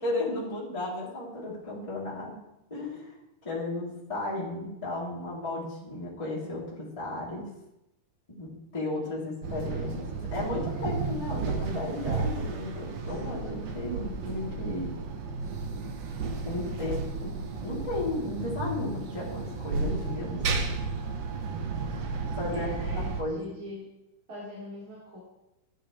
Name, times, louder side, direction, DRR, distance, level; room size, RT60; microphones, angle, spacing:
voice 1, 0.0-2.4 2.7-3.1 3.4-7.4 8.3-10.0 10.3-14.9 16.4-20.8 22.3-23.4, left 2 dB, 10° left, -7 dB, 3.4 m, -34 dB
sound 1, 9.4-23.2, right 4 dB, 70° right, 1.5 m, -33 dB
voice 2, 22.5-23.9 24.3-25.2, left 2 dB, 40° right, -8 dB, 4.3 m, -41 dB
15.0 x 11.5 x 3.5 m, 0.88 s
omnidirectional pair, 4.6 m